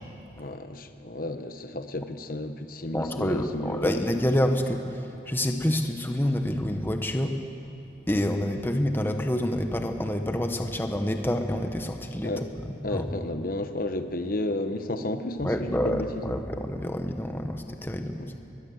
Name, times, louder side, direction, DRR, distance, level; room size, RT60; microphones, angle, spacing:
voice 1, 0.4-3.9 12.2-12.4 12.8-16.4 18.2-18.3, left 1 dB, 50° left, 8 dB, 1.1 m, -32 dB
voice 2, 2.9-4.8 5.3-7.4 8.1-12.3 12.9-13.0 15.4-18.2, left 1 dB, 10° left, 5 dB, 1.1 m, -27 dB
21.5 x 20.0 x 7.9 m, 2.8 s
head